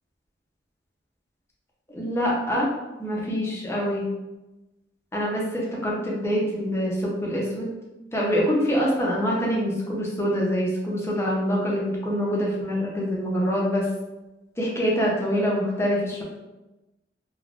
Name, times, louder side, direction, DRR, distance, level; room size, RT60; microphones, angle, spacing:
voice 1, 1.9-2.7 3.0-4.1 5.1-7.7 8.1-13.9 14.6-16.2, equal, 15° left, -4 dB, 0.6 m, -25 dB
3.5 x 2.2 x 2.4 m, 1.0 s
head